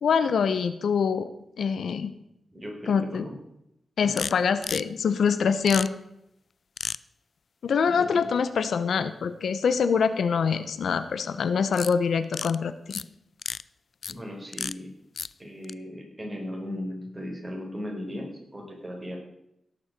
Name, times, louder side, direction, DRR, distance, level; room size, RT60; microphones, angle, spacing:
voice 1, 0.0-1.3 1.6-2.1 2.9-3.2 4.0-5.9 7.6-12.7, left 6 dB, 85° left, 12 dB, 0.9 m, -24 dB
voice 2, 2.5-3.3 4.0-4.1 7.9-8.3 14.1-14.9 15.4-19.2, left 1 dB, 20° right, 0 dB, 4.7 m, -37 dB
sound 1, 4.1-4.3 4.6-4.8 5.7-5.9 6.8-7.0 11.7-11.9 12.2-12.5 12.9-13.0 13.4-13.6 14.0-14.1 14.5-14.7 15.2-15.3 15.6-15.7, left 5 dB, 60° left, 0.4 m, -32 dB
17.0 x 7.1 x 6.7 m, 0.81 s
cardioid pair, 85°, 0 cm